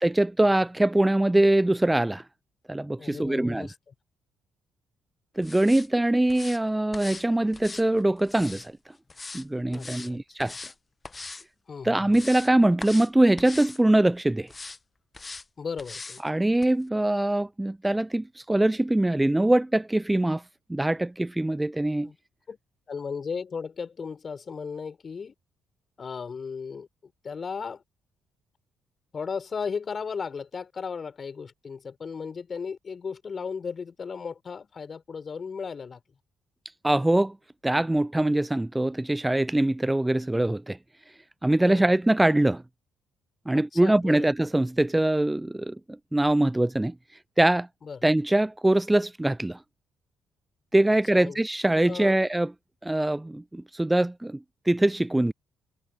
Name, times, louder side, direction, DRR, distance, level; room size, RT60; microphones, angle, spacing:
voice 1, 0.0-2.2 2.7-3.7 5.4-8.7 9.3-10.5 11.8-14.5 16.2-20.4 20.7-22.1 36.8-37.4 37.6-40.8 41.4-42.6 43.5-46.9 47.4-47.7 48.0-49.6 50.7-52.5 52.8-54.4 54.7-55.3, right 1 dB, 10° right, 0.4 m, -23 dB
voice 2, 3.0-3.9 9.7-10.2 11.7-12.1 15.6-16.2 22.0-22.2 22.5-22.6 22.9-25.3 26.0-26.9 27.2-27.8 29.1-36.0 41.6-41.9 43.5-44.3 47.8-48.0 51.1-51.4 51.8-52.2, left 5 dB, 45° left, 5.0 m, -35 dB
sound 1, 5.4-5.9 6.3-6.6 6.9-7.3 7.5-8.7 9.1-9.4 9.7-10.1 10.4-10.7 11.0-11.4 11.8-12.5 12.8-13.1 13.4-13.8 14.5-14.8 15.1-15.4 15.8-16.2 16.6-16.7, left 3 dB, 30° left, 1.1 m, -41 dB
hypercardioid pair, 45°, 0 cm